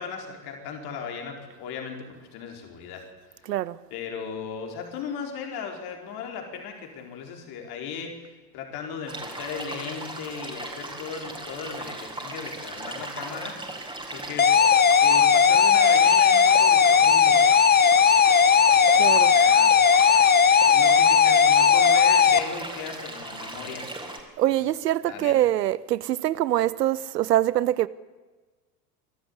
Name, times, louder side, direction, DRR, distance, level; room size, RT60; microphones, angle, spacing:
voice 1, 0.0-3.0 3.3-3.5 3.9-13.6 14.1-14.5 15.0-17.6 19.2-19.7 20.7-23.8 25.0-25.3, left 6 dB, 50° left, 4.7 m, -37 dB
voice 2, 3.4-3.8 19.0-19.4 24.4-27.9, right 13 dB, 75° right, 0.9 m, -24 dB
sound 1, 9.1-24.2, right 2 dB, 10° right, 4.7 m, -37 dB
sound 2, 14.4-22.4, left 7 dB, 20° left, 1.1 m, -17 dB
25.5 x 13.5 x 8.3 m
figure-of-eight pair, 80°, 49 cm